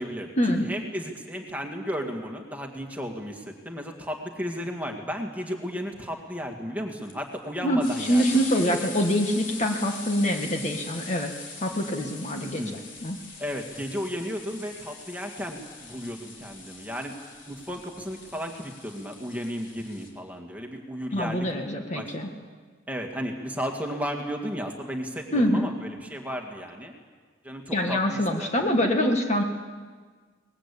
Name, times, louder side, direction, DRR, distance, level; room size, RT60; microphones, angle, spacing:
voice 1, 0.0-8.4 12.6-12.8 13.4-17.1 17.4-21.5 21.9-22.1 22.9-26.9 27.4-28.7, equal, 10° right, 2 dB, 2.0 m, -34 dB
sound 1, 7.0-20.1, left 4 dB, 65° left, 3.7 m, -42 dB
voice 2, 7.6-11.3 11.6-12.6 13.0-13.2 21.1-22.3 25.3-25.7 27.7-29.4, equal, 35° left, 3 dB, 1.8 m, -25 dB
23.0 x 20.0 x 8.5 m, 1.5 s
head